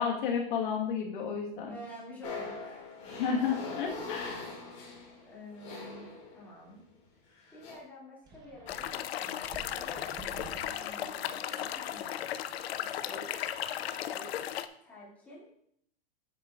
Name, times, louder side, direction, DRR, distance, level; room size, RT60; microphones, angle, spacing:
voice 1, 0.0-1.7 3.2-4.5, left 6 dB, 55° left, -1 dB, 1.4 m, -31 dB
voice 2, 1.7-2.9 5.2-6.8 7.5-13.5 13.7-14.5 14.8-15.6, equal, 5° left, -7 dB, 2.2 m, -50 dB
sound 1, 2.2-6.7 7.4-7.7, left 3 dB, 25° left, 1.9 m, -42 dB
sound 2, 8.3-12.8, right 3 dB, 15° right, 0.7 m, -51 dB
sound 3, 8.7-14.7, left 11 dB, 90° left, 0.6 m, -36 dB
9.9 x 7.7 x 2.4 m, 0.69 s
supercardioid pair, 165°, 30 cm